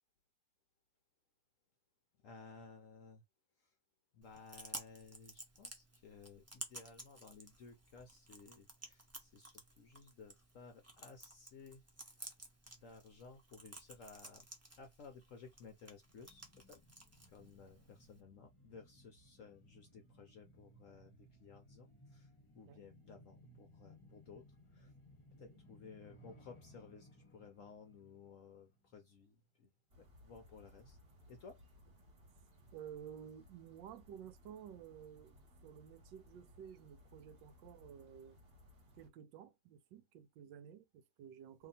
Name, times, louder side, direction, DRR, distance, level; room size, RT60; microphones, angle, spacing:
voice 1, 2.2-3.2 3.6-3.7 4.1-11.8 12.8-14.5 14.7-16.8 17.3-24.4 24.7-24.9 25.4-29.7 30.0-31.0 31.3-31.6, left 5 dB, 65° left, 0.8 m, -57 dB
Chewing mastication, 4.2-18.2, right 1 dB, 20° right, 0.4 m, -54 dB
sound 1, 16.0-29.2 29.5-29.6, equal, 20° left, 0.8 m, -63 dB
sound 2, 29.9-39.1, left 1 dB, 35° right, 1.3 m, -63 dB
voice 2, 32.7-35.4 35.6-38.4 39.0-41.7, right 9 dB, 80° right, 1.2 m, -53 dB
2.8 x 2.7 x 3.9 m
omnidirectional pair, 2.0 m